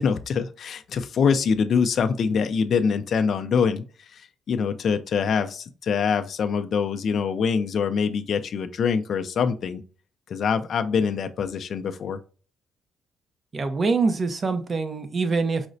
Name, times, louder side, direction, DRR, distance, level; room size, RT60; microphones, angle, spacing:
voice 1, 0.0-9.8 10.3-12.2, left 6 dB, 55° left, 0.4 m, -24 dB
voice 2, 13.5-15.7, right 4 dB, 35° right, 0.5 m, -24 dB
4.9 x 2.0 x 2.6 m
cardioid pair, 125°, 0 cm